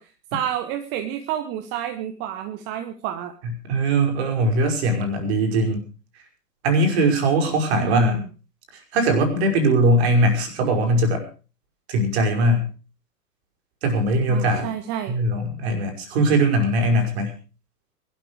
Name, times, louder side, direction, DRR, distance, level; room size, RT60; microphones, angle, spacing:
voice 1, 0.0-3.3 7.8-8.3 14.3-15.2, right 11 dB, 25° right, 8 dB, 1.1 m, -29 dB
voice 2, 3.4-5.8 6.6-8.2 8.7-11.2 11.9-12.7 13.8-14.8 15.1-17.3, right 1 dB, 40° right, 4 dB, 5.4 m, -20 dB
21.0 x 12.5 x 4.8 m, 0.35 s
figure-of-eight pair, 115°, 47 cm